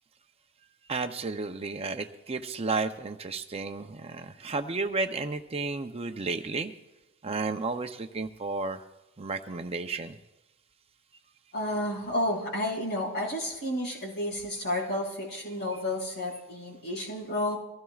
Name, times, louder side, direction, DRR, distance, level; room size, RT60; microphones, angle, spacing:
voice 1, 0.9-6.7 7.2-8.8 9.2-10.2 15.7-15.8, right 3 dB, 30° right, 7 dB, 0.6 m, -32 dB
voice 2, 11.5-17.6, left 1 dB, 55° left, -2 dB, 4.9 m, -31 dB
23.0 x 16.0 x 2.4 m, 1.0 s
head